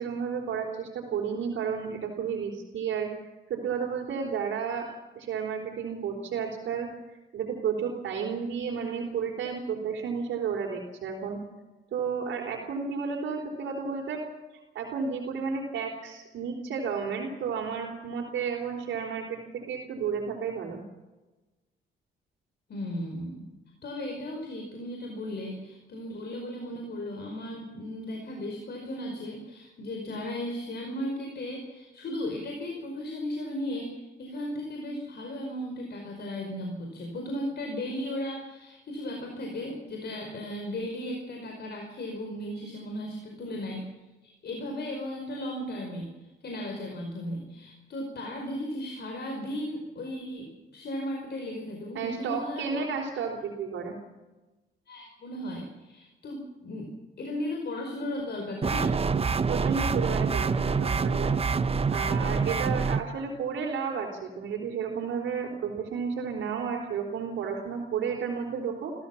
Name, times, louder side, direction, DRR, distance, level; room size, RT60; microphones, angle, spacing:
voice 1, 0.0-3.1 3.5-4.9 5.2-6.9 7.3-11.4 11.9-14.2 14.7-20.8 51.9-53.9 59.5-61.3 61.9-68.9, right 6 dB, 75° right, 0 dB, 3.9 m, -32 dB
voice 2, 22.7-23.5 23.8-43.8 44.2-52.8 54.9-59.0, left 1 dB, 55° left, 2 dB, 5.1 m, -36 dB
sound 1, 58.6-63.0, right 5 dB, 30° right, 1.0 m, -26 dB
27.0 x 15.0 x 7.2 m, 1.1 s
cardioid pair, 90°, 20 cm